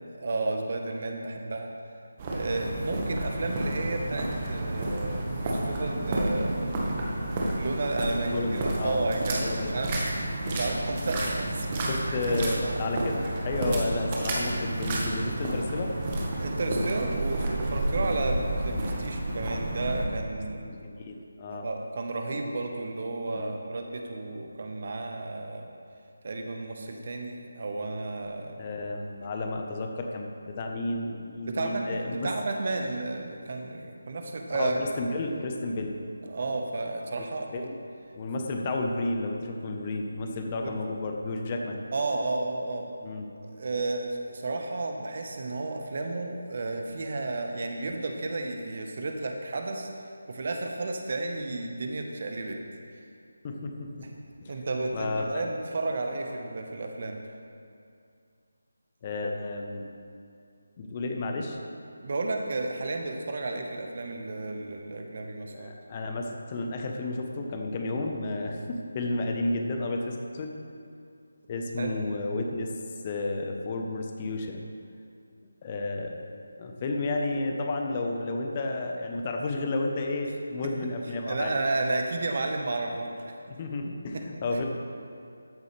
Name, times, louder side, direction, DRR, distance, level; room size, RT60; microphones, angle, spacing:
voice 1, 0.1-1.7 2.3-7.2 7.5-11.8 12.1-12.8 16.4-20.8 21.5-25.7 26.2-28.6 31.4-34.8 36.2-37.5 40.6-40.7 41.9-42.9 43.5-49.9 50.3-52.6 54.0-54.1 54.5-57.2 62.0-65.7 71.8-71.9 81.3-83.3 84.1-84.2, right 2 dB, 45° right, 3 dB, 1.2 m, -32 dB
sound 1, 2.2-20.1, right 1 dB, 25° right, 1.4 m, -30 dB
voice 2, 8.3-9.0 9.4-9.7 11.9-15.9 20.6-21.7 23.3-23.6 28.6-32.3 34.6-36.0 37.2-37.3 37.5-37.8 38.1-41.8 43.0-43.3 53.4-54.1 54.9-55.5 59.0-59.8 60.8-61.6 65.5-70.5 71.5-72.7 73.0-74.6 75.6-76.3 76.5-81.5 83.6-84.7, left 2 dB, 30° left, 2 dB, 1.1 m, -32 dB
13.5 x 8.3 x 3.4 m, 2.5 s
figure-of-eight pair, 155°, 0 cm